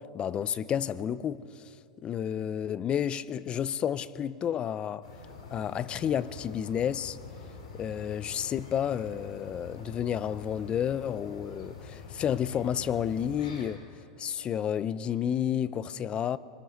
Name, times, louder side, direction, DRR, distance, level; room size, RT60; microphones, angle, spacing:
voice 1, 0.0-1.7 2.0-5.1 5.5-7.2 7.7-13.8 14.2-16.4, left 9 dB, 30° left, 0.6 m, -31 dB
sound 1, 5.0-13.7, left 4 dB, 85° left, 5.5 m, -46 dB
25.5 x 21.5 x 6.5 m
supercardioid pair, 130°, 4 cm